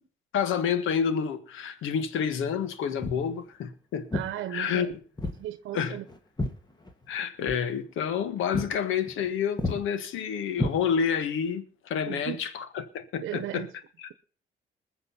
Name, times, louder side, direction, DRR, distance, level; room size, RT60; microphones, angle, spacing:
voice 1, 0.3-4.1 4.5-5.0 5.7-6.0 7.1-13.7 14.0-14.1, left 7 dB, 85° left, 1.5 m, -29 dB
Walk footsteps, 3.0-3.3 4.1-4.3 5.2-5.4 5.7-7.2 7.4-7.6 8.1-8.2 8.5-8.7 9.0-9.3 9.6-9.8 10.5-11.2, left 2 dB, 20° left, 2.1 m, -31 dB
voice 2, 4.1-4.9 5.4-6.0 12.1-12.4 13.2-13.7, right 12 dB, 80° right, 1.0 m, -35 dB
20.5 x 7.0 x 5.6 m
cardioid pair, 90°, 20 cm